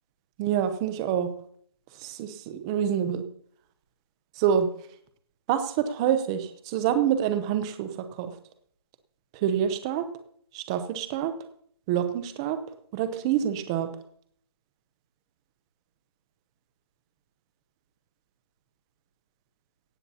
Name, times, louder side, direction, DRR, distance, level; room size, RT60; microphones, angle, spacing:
voice 1, 0.4-1.3 2.0-3.2 4.4-4.7 5.5-7.9 8.2-8.3 9.4-10.1 10.5-11.3 11.9-12.6 12.9-13.9, right 9 dB, 10° right, 10 dB, 0.7 m, -26 dB
17.0 x 15.5 x 2.9 m, 0.63 s
hypercardioid pair, 170°, 14 cm